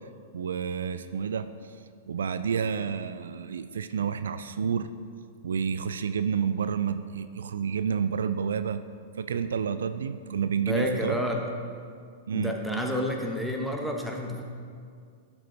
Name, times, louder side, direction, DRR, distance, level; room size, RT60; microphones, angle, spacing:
voice 1, 0.3-1.7 2.1-4.9 5.4-8.8 9.2-11.2 12.3-12.5, right 7 dB, 75° right, 11 dB, 0.3 m, -29 dB
voice 2, 10.7-11.4 12.3-14.4, left 1 dB, ahead, 1 dB, 1.1 m, -29 dB
11.5 x 5.4 x 4.0 m, 2.2 s
hypercardioid pair, 105°, 0 cm